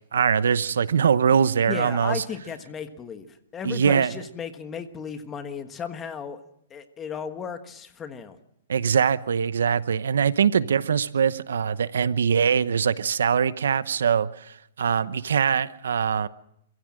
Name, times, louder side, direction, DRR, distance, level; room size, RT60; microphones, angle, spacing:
voice 1, 0.1-2.2 3.6-4.1 8.7-14.3 14.8-16.3, right 7 dB, 90° right, 0.9 m, -22 dB
voice 2, 1.7-3.3 3.5-6.4 6.7-8.4, left 7 dB, 15° left, 1.4 m, -35 dB
27.5 x 15.5 x 7.7 m
hypercardioid pair, 160°, 0 cm